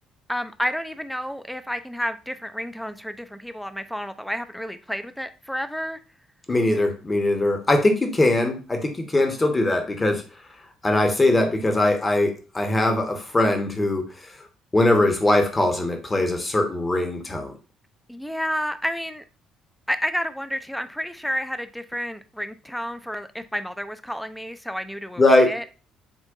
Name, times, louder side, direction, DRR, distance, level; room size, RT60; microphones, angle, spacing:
voice 1, 0.3-6.0 18.1-19.2 19.9-25.6, equal, 5° left, 0.5 m, -30 dB
voice 2, 6.5-10.2 10.8-14.1 14.7-17.5 25.2-25.6, left 2 dB, 25° left, 1.1 m, -21 dB
7.2 x 2.6 x 2.5 m
figure-of-eight pair, 50°, 0 cm